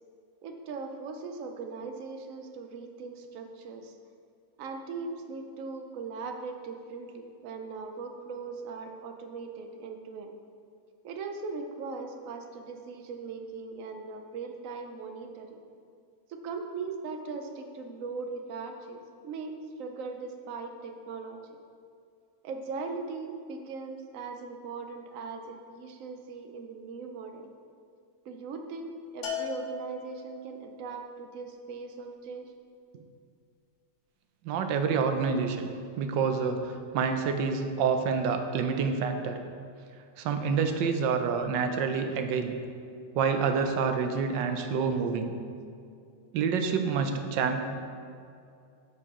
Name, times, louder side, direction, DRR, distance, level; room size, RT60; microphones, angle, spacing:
voice 1, 0.4-3.9 4.6-10.3 11.0-15.6 16.3-19.5 19.8-21.4 22.4-27.5 28.3-32.5 32.9-33.0, right 4 dB, 65° right, 5 dB, 0.8 m, -39 dB
Bell, 29.2-30.6, left 6 dB, 85° left, 1.7 m, -37 dB
voice 2, 34.4-35.7 36.0-39.4 40.2-42.5 43.1-45.3 46.3-47.6, right 5 dB, 80° right, 6 dB, 1.3 m, -27 dB
9.8 x 4.8 x 3.7 m, 2.4 s
omnidirectional pair, 2.0 m